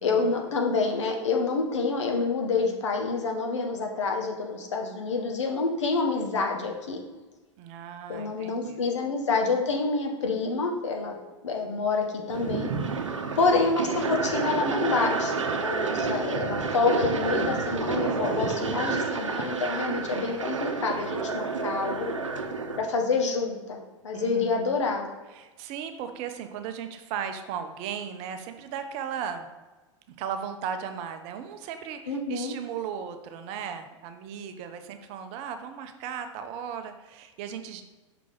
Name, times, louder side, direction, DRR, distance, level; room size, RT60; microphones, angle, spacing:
voice 1, 0.0-7.0 8.1-11.2 11.4-12.7 13.4-22.1 22.8-23.8 24.0-25.1 32.1-32.5, left 4 dB, 70° left, 2 dB, 1.1 m, -27 dB
voice 2, 7.6-8.8 24.1-24.7 25.3-29.5 30.2-37.8, right 8 dB, 40° right, 8 dB, 0.6 m, -36 dB
sound 1, 12.3-22.8, right 4 dB, 80° right, 0.7 m, -29 dB
5.8 x 4.7 x 3.9 m, 1.2 s
figure-of-eight pair, 95°, 16 cm